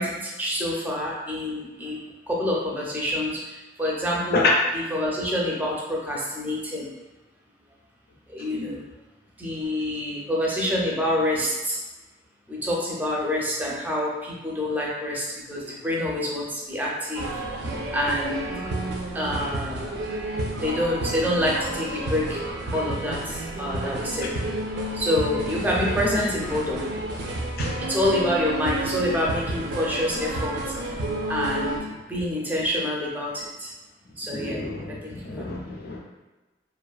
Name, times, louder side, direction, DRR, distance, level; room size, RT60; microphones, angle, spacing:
voice 1, 0.0-2.0 2.3-4.5 4.7-6.9 8.3-8.8 9.4-11.8 12.5-17.3 17.9-18.5 19.1-19.8 20.6-22.4 22.7-24.3 24.9-26.8 27.8-30.5 31.3-31.8 32.1-33.7 34.2-34.6 35.0-35.5, left 1 dB, 10° right, -4 dB, 0.4 m, -27 dB
sound 1, 17.1-31.8, right 1 dB, 70° right, 0.4 m, -30 dB
voice 2, 34.3-36.0, left 3 dB, 60° left, 0 dB, 0.4 m, -27 dB
2.4 x 2.4 x 2.3 m, 1.1 s
head